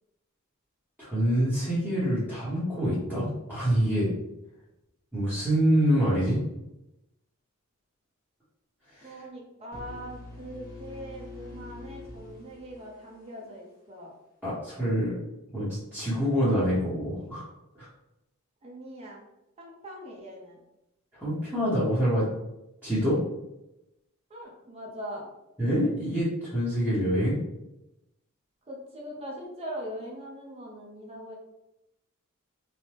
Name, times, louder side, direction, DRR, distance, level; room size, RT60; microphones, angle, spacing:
voice 1, 1.0-4.1 5.1-6.4 8.9-9.1 14.4-15.1 15.5-17.4 17.7-17.9 21.1-22.3 22.8-23.2 25.6-27.4, equal, 10° right, -12 dB, 0.9 m, -26 dB
voice 2, 9.0-14.1 18.6-19.2 19.6-20.6 24.3-25.3 28.6-31.4, equal, 30° right, -2 dB, 0.7 m, -41 dB
sound 1, 9.7-13.6, left 2 dB, 45° left, 0.8 m, -45 dB
3.2 x 2.1 x 2.9 m, 0.91 s
head